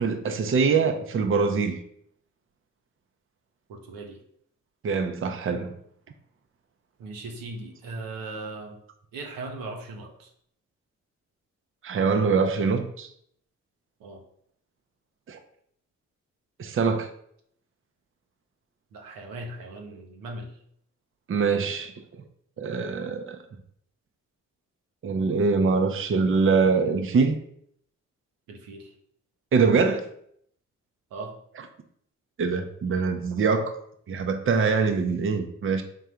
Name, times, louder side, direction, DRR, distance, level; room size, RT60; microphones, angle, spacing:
voice 1, 0.0-1.8 4.8-5.7 11.8-13.1 15.3-15.4 16.6-17.1 21.3-21.9 22.6-23.4 25.0-27.4 29.5-30.0 32.4-33.7 34.1-35.8, right 5 dB, 40° right, 0.6 m, -23 dB
voice 2, 3.7-4.2 7.0-8.8 9.1-10.3 14.0-14.2 18.9-20.6 28.5-28.9 31.1-31.3, right 2 dB, 85° right, 0.7 m, -38 dB
3.7 x 2.5 x 4.3 m
supercardioid pair, 45°, 34 cm